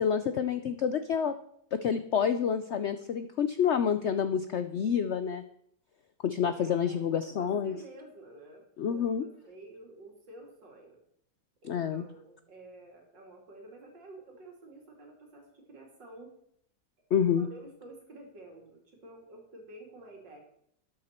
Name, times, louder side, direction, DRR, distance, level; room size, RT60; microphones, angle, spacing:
voice 1, 0.0-1.3 1.8-5.4 6.2-7.7 8.8-9.2 11.6-12.0 17.1-17.5, left 7 dB, 85° left, 11 dB, 0.6 m, -28 dB
voice 2, 6.5-11.0 11.6-16.3 17.4-20.4, right 2 dB, 85° right, 1 dB, 3.2 m, -50 dB
12.5 x 9.8 x 4.4 m, 0.69 s
omnidirectional pair, 1.9 m